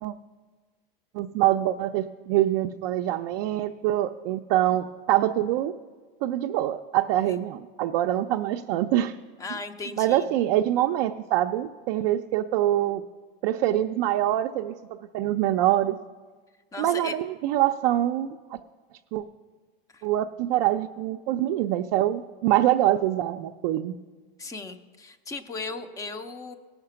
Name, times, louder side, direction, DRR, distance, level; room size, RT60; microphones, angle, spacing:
voice 1, 1.1-5.7 6.2-9.2 10.0-13.0 13.4-16.0 16.8-18.6 19.1-19.2 20.0-24.0, right 13 dB, 45° right, 4 dB, 0.4 m, -25 dB
voice 2, 9.4-10.3 16.7-17.2 19.9-20.1 24.4-26.5, left 3 dB, 10° left, 9 dB, 0.5 m, -37 dB
17.0 x 5.8 x 6.8 m, 1.4 s
supercardioid pair, 145°, 29 cm